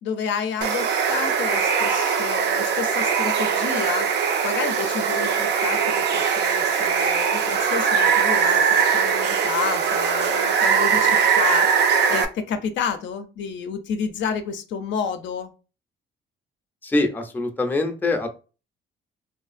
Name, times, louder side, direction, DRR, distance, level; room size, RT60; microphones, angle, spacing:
voice 1, 0.0-15.5, left 6 dB, 70° left, 8 dB, 0.4 m, -30 dB
Water, 0.6-12.3, right 6 dB, 60° right, 0.4 m, -21 dB
voice 2, 16.8-18.3, left 2 dB, 10° left, 4 dB, 0.4 m, -23 dB
2.5 x 2.4 x 2.4 m, 0.33 s
cardioid pair, 90°, 20 cm